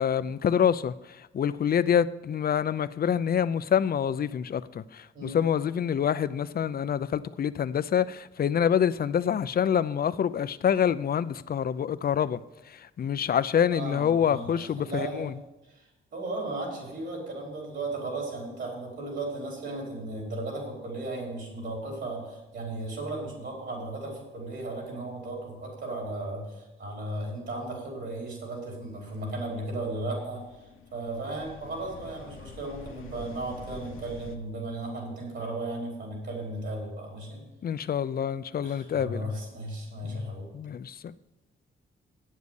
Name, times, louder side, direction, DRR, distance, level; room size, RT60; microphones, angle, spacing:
voice 1, 0.0-15.3 37.6-39.4 40.0-41.1, left 8 dB, 45° left, 0.5 m, -27 dB
voice 2, 13.7-15.3 15.7-15.8 16.1-30.4 30.9-37.4 38.6-40.5, right 2 dB, 65° right, 4.8 m, -35 dB
sound 1, 29.1-34.4, left 5 dB, 75° left, 1.0 m, -47 dB
9.2 x 7.4 x 8.2 m
cardioid pair, 105°, 21 cm